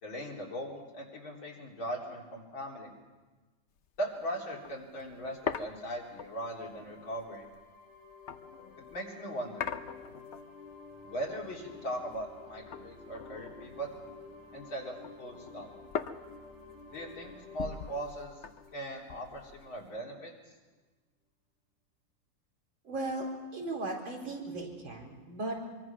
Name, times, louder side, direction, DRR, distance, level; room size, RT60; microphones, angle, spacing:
voice 1, 0.0-2.9 4.0-7.5 8.9-9.7 11.0-13.9 14.5-15.7 16.9-18.4 18.7-20.3, right 1 dB, 85° left, -2 dB, 4.5 m, -39 dB
sound 1, 3.8-4.0 4.3-4.4 4.6-9.0 9.6-10.7 11.1-12.4 12.7-14.4 14.8-20.0, left 7 dB, 55° left, 0.8 m, -42 dB
sound 2, 5.2-19.7, left 4 dB, 20° right, 8.3 m, -52 dB
voice 2, 22.8-23.2 23.5-25.5, right 2 dB, 80° right, 0 dB, 5.0 m, -36 dB
24.5 x 23.5 x 6.1 m, 1.2 s
omnidirectional pair, 2.1 m